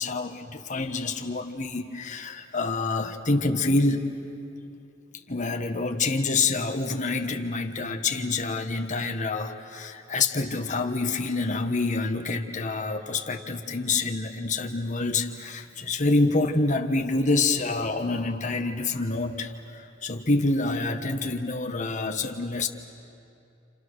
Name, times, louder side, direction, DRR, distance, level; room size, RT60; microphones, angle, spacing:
voice 1, 0.0-4.1 5.3-22.7, left 3 dB, 35° left, 5 dB, 1.5 m, -27 dB
29.5 x 29.0 x 6.5 m, 2.7 s
head